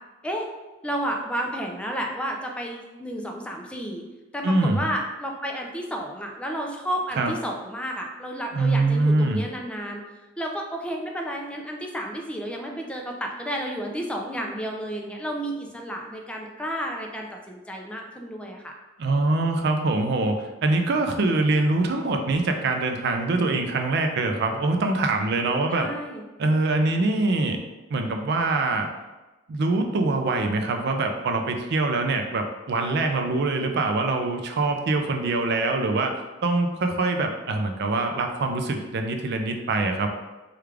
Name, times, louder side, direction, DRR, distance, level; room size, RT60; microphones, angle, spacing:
voice 1, 0.8-4.0 4.3-10.0 10.4-18.7 25.7-26.2, equal, 5° left, 1 dB, 0.4 m, -31 dB
voice 2, 4.4-4.9 7.2-7.3 8.5-9.4 19.0-25.9 26.4-27.6 27.9-28.9 29.5-40.1, right 2 dB, 60° right, 4 dB, 0.4 m, -24 dB
3.3 x 2.4 x 3.3 m, 1.1 s
head